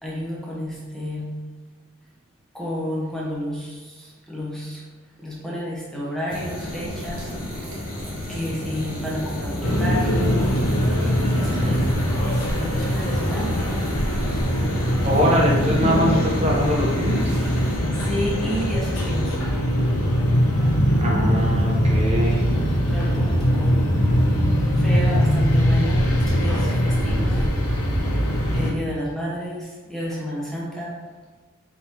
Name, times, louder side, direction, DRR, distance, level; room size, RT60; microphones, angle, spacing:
voice 1, 0.0-1.4 2.5-4.8 5.2-7.3 8.3-10.6 11.4-11.9 12.2-13.6 17.9-19.5 22.5-24.4 24.7-27.7 28.5-31.0, equal, ahead, -6 dB, 0.7 m, -31 dB
sound 1, 6.3-19.4, left 1 dB, 40° left, 0.7 m, -31 dB
sound 2, 6.3-17.8, right 1 dB, 75° right, 1.4 m, -39 dB
sound 3, 9.6-28.7, equal, 90° left, 0.9 m, -21 dB
voice 2, 11.4-12.0 15.0-17.2 20.9-22.5, equal, 30° right, -3 dB, 0.7 m, -23 dB
5.3 x 2.8 x 3.0 m, 1.3 s
head